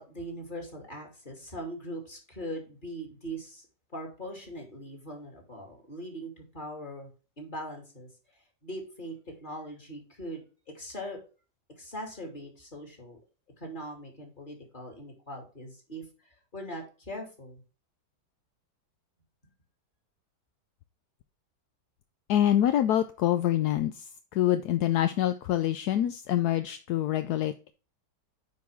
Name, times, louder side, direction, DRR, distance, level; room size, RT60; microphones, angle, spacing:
voice 1, 0.0-3.7 3.9-7.1 7.4-8.1 8.6-9.2 9.4-10.4 10.7-11.2 11.8-13.2 13.6-16.0 16.5-17.6, equal, 30° left, 2 dB, 2.7 m, -40 dB
voice 2, 22.3-27.7, left 12 dB, 75° left, 10 dB, 1.1 m, -26 dB
9.4 x 4.9 x 3.5 m, 0.35 s
omnidirectional pair, 1.8 m